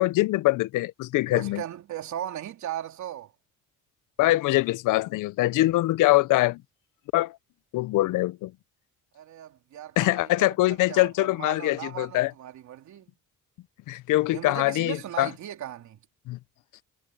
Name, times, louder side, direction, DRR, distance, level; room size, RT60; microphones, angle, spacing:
voice 1, 0.0-1.6 4.2-6.6 7.1-7.3 7.7-8.5 10.0-12.3 13.9-15.3 16.3-16.4, left 18 dB, 80° left, 0.6 m, -23 dB
voice 2, 1.3-3.3 9.1-13.1 14.3-16.0, right 11 dB, 65° right, 3.3 m, -38 dB
cardioid pair, 120°, 31 cm